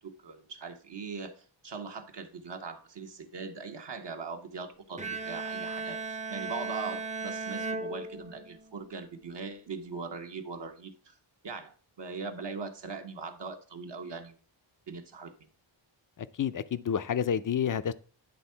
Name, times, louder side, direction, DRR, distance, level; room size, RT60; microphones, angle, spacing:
voice 1, 0.0-11.1 11.4-14.4 14.9-15.3, right 4 dB, 60° right, 1.2 m, -41 dB
Bowed string instrument, 5.0-8.7, right 4 dB, 15° right, 0.6 m, -36 dB
voice 2, 16.2-17.9, left 8 dB, 40° left, 0.5 m, -29 dB
10.0 x 3.7 x 5.6 m
wide cardioid pair, 100°, 48 cm